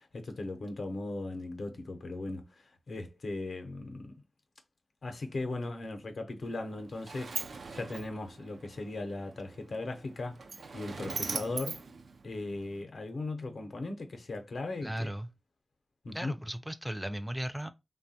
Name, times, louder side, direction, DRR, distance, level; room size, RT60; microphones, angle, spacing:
voice 1, 0.0-4.1 5.0-10.4 10.7-11.8 12.2-15.1 16.0-16.3, left 2 dB, 85° left, 0.6 m, -38 dB
Sliding door, 6.4-12.8, right 4 dB, 90° right, 0.3 m, -41 dB
voice 2, 14.8-15.3 16.1-17.7, right 1 dB, 5° right, 0.3 m, -36 dB
3.1 x 2.2 x 2.6 m
wide cardioid pair, 65°, 0 cm